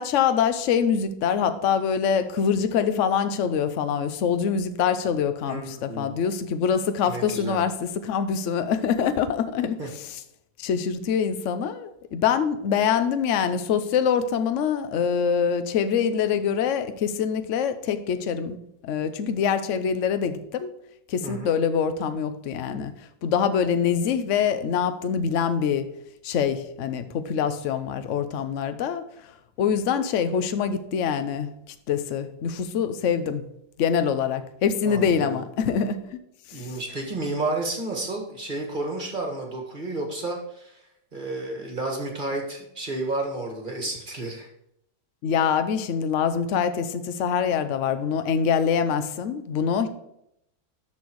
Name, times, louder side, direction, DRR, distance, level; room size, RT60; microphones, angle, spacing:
voice 1, 0.0-10.2 10.6-18.6 18.8-20.7 21.1-22.9 23.2-25.8 26.2-29.3 29.6-33.5 33.8-36.0 36.5-36.7 45.2-49.9, left 7 dB, 60° left, 10 dB, 0.9 m, -25 dB
voice 2, 5.4-6.1 7.1-7.6 9.8-9.9 21.2-21.5 34.8-35.4 36.5-40.8 41.1-44.5, right 2 dB, 30° right, 1 dB, 1.7 m, -31 dB
12.5 x 4.5 x 4.7 m, 0.78 s
omnidirectional pair, 1.9 m